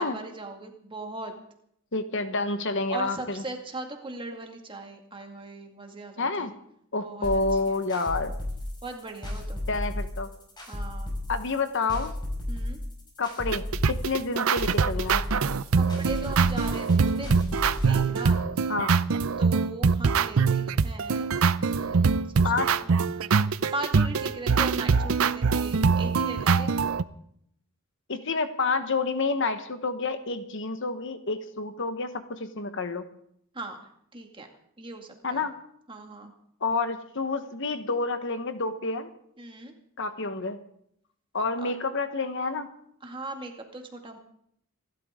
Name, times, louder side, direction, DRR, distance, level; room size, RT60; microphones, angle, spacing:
voice 1, 0.0-1.3 2.9-6.5 7.0-7.8 8.8-9.6 10.7-11.1 12.5-12.8 15.7-17.5 17.9-18.4 19.4-21.3 21.6-22.5 22.8-23.0 23.7-26.7 33.5-34.5 34.8-35.5 35.9-36.3 39.4-39.7 41.6-41.7 43.0-44.2, right 2 dB, 25° right, 3 dB, 2.2 m, -39 dB
voice 2, 1.9-3.4 6.2-6.5 6.9-8.3 9.7-10.3 11.3-12.1 13.2-15.2 18.7-18.9 22.4-22.7 28.1-33.0 35.2-35.5 36.6-39.1 40.0-40.6 41.3-42.7, left 3 dB, 60° left, 9 dB, 1.3 m, -29 dB
sound 1, 7.2-17.9, left 1 dB, 20° left, 5.6 m, -34 dB
sound 2, 13.5-27.0, right 5 dB, 80° right, 0.6 m, -23 dB
26.5 x 12.5 x 3.8 m, 0.71 s
head